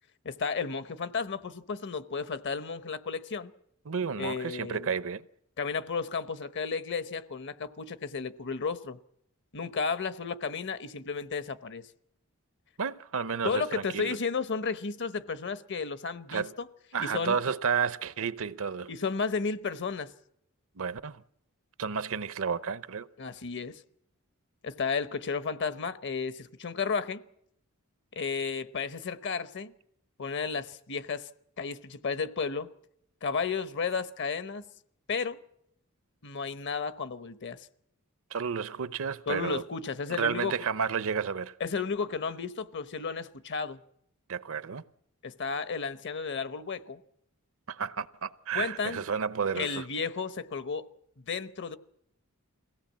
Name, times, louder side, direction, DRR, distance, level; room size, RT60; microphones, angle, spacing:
voice 1, 0.2-3.5 4.2-4.9 5.6-9.0 9.5-11.9 13.4-16.7 17.0-17.4 18.9-20.1 23.2-23.8 24.6-27.2 28.1-29.7 30.2-31.3 31.6-32.7 33.2-34.6 35.1-35.4 36.2-37.7 39.3-40.5 41.6-43.8 45.2-47.0 48.5-49.0 49.6-50.9 51.2-51.8, left 5 dB, 55° left, 0.9 m, -33 dB
voice 2, 3.9-5.2 12.8-14.2 16.3-16.5 16.9-18.9 20.8-21.2 21.8-23.1 38.3-39.6 40.1-41.5 44.3-44.8 47.7-49.9, right 6 dB, 65° right, 0.7 m, -31 dB
22.5 x 17.0 x 7.4 m
head